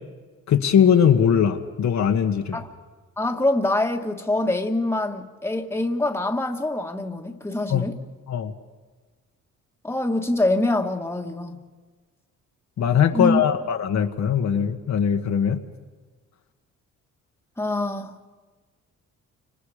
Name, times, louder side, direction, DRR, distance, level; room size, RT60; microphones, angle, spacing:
voice 1, 0.5-2.6 7.7-7.8 8.3-8.5 12.8-15.6, left 8 dB, 65° left, 1.7 m, -20 dB
voice 2, 3.2-8.0 9.8-11.7 13.1-13.4 17.6-18.1, left 2 dB, 10° left, 1.9 m, -24 dB
30.0 x 26.0 x 5.1 m
cardioid pair, 90°, 30 cm